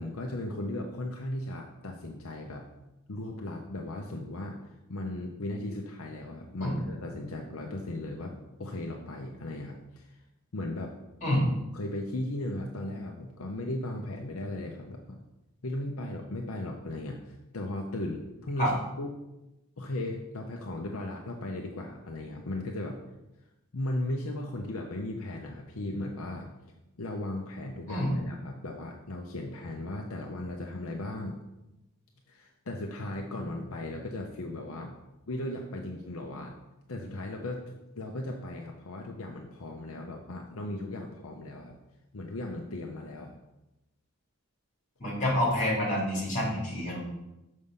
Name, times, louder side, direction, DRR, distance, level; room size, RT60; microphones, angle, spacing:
voice 1, 0.0-2.6 3.1-4.6 4.9-10.2 10.5-10.9 11.7-15.2 15.6-19.1 19.8-23.0 23.7-26.5 27.0-31.4 32.3-35.0 35.3-36.5 36.9-37.6 38.0-41.7 42.1-43.4, left 1 dB, 70° left, 1 dB, 0.8 m, -36 dB
voice 2, 45.0-47.0, equal, 35° left, -4 dB, 3.0 m, -27 dB
6.6 x 5.4 x 5.5 m, 0.97 s
head